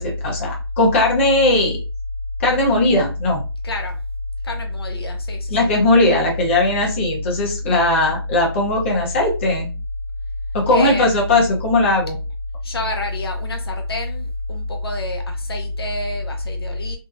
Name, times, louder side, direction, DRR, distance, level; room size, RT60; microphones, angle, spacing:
voice 1, 0.0-1.8 2.4-3.4 5.5-9.7 10.5-12.1, left 2 dB, 30° left, -1 dB, 0.7 m, -18 dB
voice 2, 3.6-4.0 4.4-5.7 10.7-11.2 12.6-17.0, left 2 dB, 70° left, 2 dB, 0.8 m, -26 dB
2.6 x 2.0 x 2.5 m, 0.32 s
figure-of-eight pair, 155°, 13 cm